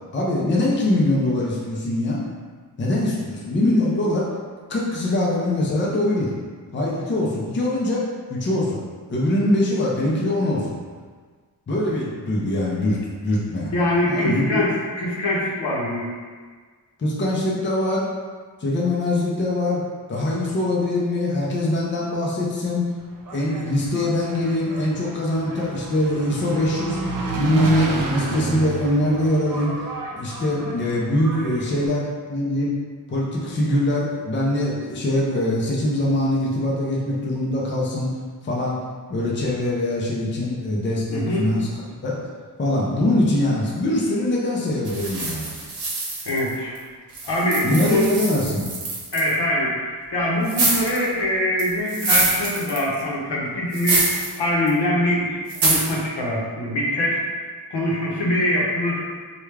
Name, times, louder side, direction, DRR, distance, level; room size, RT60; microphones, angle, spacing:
voice 1, 0.1-2.2 2.8-4.3 4.7-6.3 6.7-8.0 8.3-8.8 9.1-10.8 11.7-13.7 14.1-14.6 17.0-18.0 18.6-19.8 20.1-22.9 23.3-27.0 27.3-29.8 30.1-32.0 32.3-32.8 33.1-38.1 38.4-38.8 39.1-41.7 42.0-42.2 42.6-45.5 47.6-48.7, left 1 dB, 30° left, -4 dB, 0.5 m, -22 dB
voice 2, 13.7-16.2 41.1-41.4 46.3-46.8 47.2-48.1 49.1-57.2 57.7-59.0, left 1 dB, 85° left, -4 dB, 0.9 m, -23 dB
Engine, 23.0-31.9, right 2 dB, 55° right, 0.5 m, -31 dB
sound 1, 44.9-46.8 47.1-49.3 50.5-51.1 51.6-53.0 53.7-54.4 54.7-54.8 55.5-56.0, right 3 dB, 75° right, 0.8 m, -25 dB
3.3 x 2.3 x 3.2 m, 1.5 s
wide cardioid pair, 165°, 40 cm